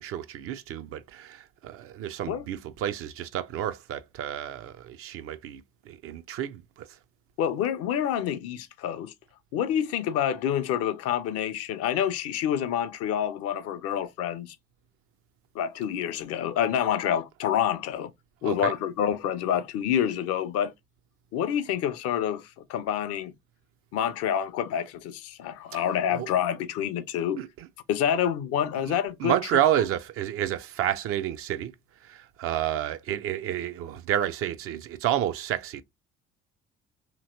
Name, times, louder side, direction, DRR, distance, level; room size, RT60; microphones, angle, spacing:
voice 1, 0.0-5.6 5.9-6.9 18.4-18.7 25.7-25.8 26.1-26.3 27.4-27.7 28.9-29.0 29.2-31.7 32.0-35.8, right 11 dB, 45° right, 0.4 m, -30 dB
voice 2, 7.4-9.1 9.5-14.5 15.5-18.1 18.4-20.7 21.3-23.3 23.9-27.4 27.9-29.4, left 9 dB, 50° left, 0.5 m, -27 dB
2.9 x 2.8 x 2.6 m
figure-of-eight pair, 50°, 32 cm